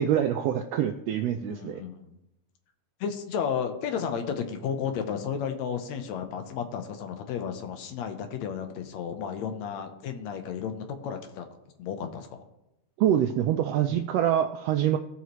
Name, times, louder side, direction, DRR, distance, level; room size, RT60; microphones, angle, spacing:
voice 1, 0.0-1.8 13.0-15.0, right 10 dB, 80° right, 6 dB, 1.4 m, -25 dB
voice 2, 1.3-2.2 3.0-11.5 11.8-12.4, left 7 dB, 75° left, 6 dB, 2.1 m, -33 dB
17.0 x 5.6 x 3.1 m, 0.90 s
omnidirectional pair, 3.3 m